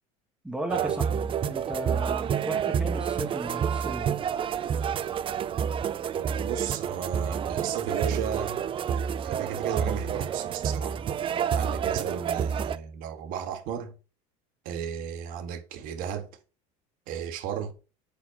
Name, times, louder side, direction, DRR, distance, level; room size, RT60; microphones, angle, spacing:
voice 1, 0.4-4.2, right 1 dB, 5° right, 1.9 m, -36 dB
sound 1, 0.7-12.8, right 8 dB, 35° right, 0.6 m, -29 dB
voice 2, 6.1-8.6 9.2-11.0 11.5-13.9 14.6-16.3 17.1-17.7, right 8 dB, 65° right, 1.9 m, -34 dB
8.1 x 4.6 x 6.2 m
supercardioid pair, 110°, 16 cm